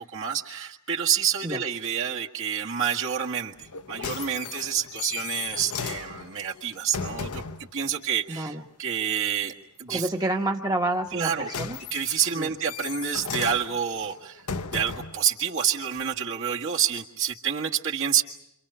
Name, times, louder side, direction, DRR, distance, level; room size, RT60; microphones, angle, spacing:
voice 1, 0.0-10.1 11.1-11.5 11.9-14.4 14.7-18.2, right 8 dB, 60° right, 0 dB, 1.8 m, -28 dB
sound 1, 3.6-7.7 11.0-15.2 16.0-16.1, left 6 dB, 85° left, 0.9 m, -36 dB
voice 2, 8.3-8.6 9.9-11.8 12.4-12.5, right 1 dB, 20° right, 2 dB, 1.0 m, -28 dB
29.0 x 26.5 x 5.7 m, 0.77 s
head